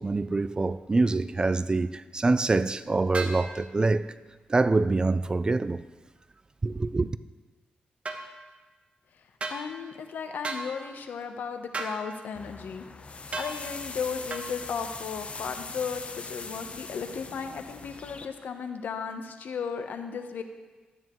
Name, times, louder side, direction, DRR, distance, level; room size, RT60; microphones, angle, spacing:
voice 1, 0.0-4.1 4.5-5.8 6.6-7.1, right 3 dB, 25° right, 0.3 m, -25 dB
sound 1, 3.1-3.4 8.0-8.2 9.4-9.6 10.4-10.7 11.7-12.0 13.3-13.5 14.3-14.5, right 3 dB, 45° right, 1.0 m, -33 dB
voice 2, 9.5-12.8 13.1-20.4, left 6 dB, 75° left, 0.8 m, -35 dB
sound 2, 12.3-18.3, left 4 dB, 40° left, 0.7 m, -41 dB
12.5 x 9.3 x 3.0 m
cardioid pair, 80°, 3 cm